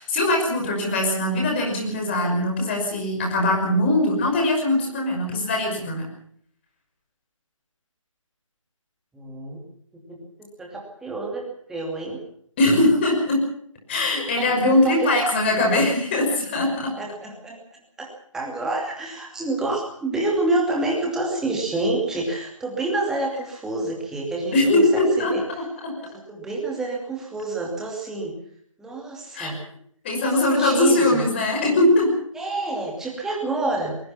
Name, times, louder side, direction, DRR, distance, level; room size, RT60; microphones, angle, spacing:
voice 1, 0.0-6.1 12.6-13.5 13.9-16.9 24.5-25.3 25.8-25.9 29.3-29.5 30.0-32.1, left 1 dB, 20° left, 1 dB, 5.8 m, -21 dB
voice 2, 9.1-9.6 9.9-12.2 14.4-15.1 17.0-17.6 18.0-25.4 26.1-28.4 28.8-29.6 30.2-31.2 32.3-34.0, right 2 dB, 5° right, -1 dB, 2.7 m, -28 dB
23.0 x 21.0 x 5.9 m, 0.66 s
figure-of-eight pair, 155°, 17 cm